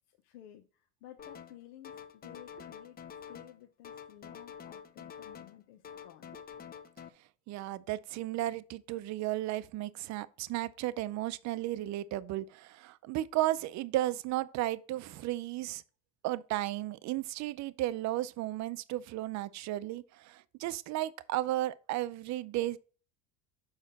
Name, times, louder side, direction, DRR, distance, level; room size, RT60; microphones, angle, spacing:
voice 1, 0.1-3.0 3.3-6.3, left 12 dB, 80° left, 1.0 m, -54 dB
sound 1, 1.2-1.6 1.8-3.6 3.8-5.6 5.8-7.1, left 8 dB, 20° left, 0.6 m, -47 dB
voice 2, 7.5-15.8 16.2-22.8, right 15 dB, 45° right, 0.6 m, -34 dB
7.3 x 5.7 x 4.1 m
supercardioid pair, 130°, 42 cm